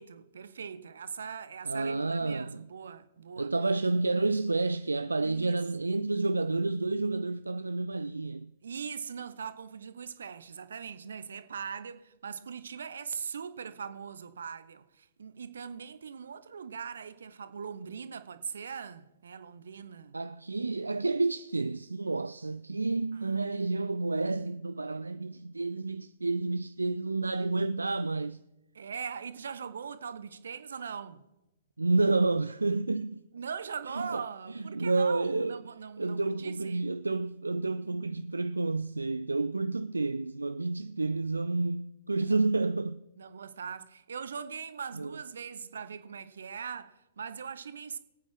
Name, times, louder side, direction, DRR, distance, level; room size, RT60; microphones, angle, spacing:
voice 1, 0.0-3.5 5.2-5.6 8.6-20.2 23.1-23.4 28.7-31.2 33.3-36.8 42.2-42.4 43.2-48.0, right 6 dB, 65° right, 0.9 m, -41 dB
voice 2, 1.6-2.7 3.4-8.5 20.1-28.4 31.8-33.2 33.9-34.2 34.5-35.6 36.0-43.0 45.0-45.1, right 3 dB, 80° right, 0.3 m, -30 dB
24.0 x 8.8 x 3.7 m
figure-of-eight pair, 115°, 0 cm